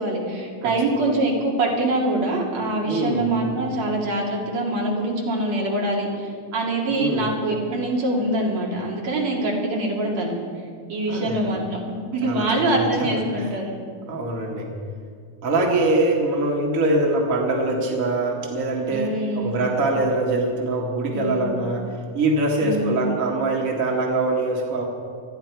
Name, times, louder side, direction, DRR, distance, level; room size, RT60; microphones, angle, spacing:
voice 1, 0.0-10.3 10.9-13.7 18.9-19.6 21.1-21.5 22.6-23.1, right 1 dB, 65° right, -2 dB, 3.8 m, -24 dB
voice 2, 2.8-3.6 6.9-7.4 11.1-11.6 12.2-13.5 14.1-14.7 15.4-24.9, right 2 dB, 30° right, -1 dB, 1.9 m, -24 dB
20.5 x 13.5 x 4.7 m, 2.3 s
omnidirectional pair, 3.3 m